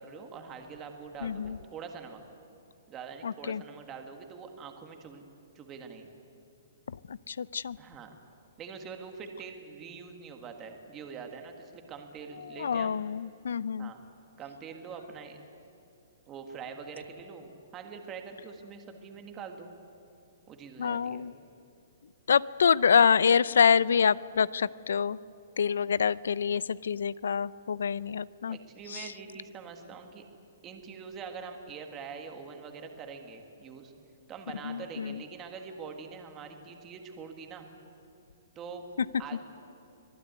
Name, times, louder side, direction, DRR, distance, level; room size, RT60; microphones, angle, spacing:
voice 1, 0.0-2.2 2.9-5.3 5.6-6.1 7.8-8.1 8.6-13.0 13.8-14.0 14.4-15.4 16.3-19.7 20.5-21.3 28.5-30.3 30.6-33.9 34.3-37.7 38.6-38.8 39.2-39.4, right 5 dB, 15° right, 4 dB, 1.6 m, -44 dB
voice 2, 1.2-1.6 3.2-3.6 6.9-7.8 12.4-13.9 20.8-21.3 22.3-25.2 25.6-28.6 28.9-29.1 34.6-35.2, left 6 dB, 85° left, 20 dB, 0.6 m, -26 dB
25.0 x 19.0 x 9.5 m, 2.7 s
hypercardioid pair, 175°, 0 cm